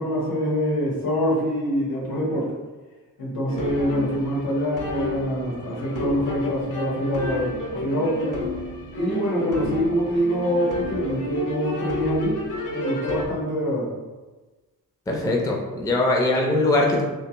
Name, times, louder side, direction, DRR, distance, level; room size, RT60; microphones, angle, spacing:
voice 1, 0.0-2.5 3.2-8.4 8.9-13.9, equal, 80° left, -5 dB, 1.5 m, -25 dB
sound 1, 3.5-13.3, left 2 dB, 60° left, 0.7 m, -31 dB
voice 2, 15.1-17.0, left 2 dB, 10° left, 0 dB, 0.4 m, -21 dB
3.3 x 3.2 x 2.9 m, 1.2 s
wide cardioid pair, 145°, 35 cm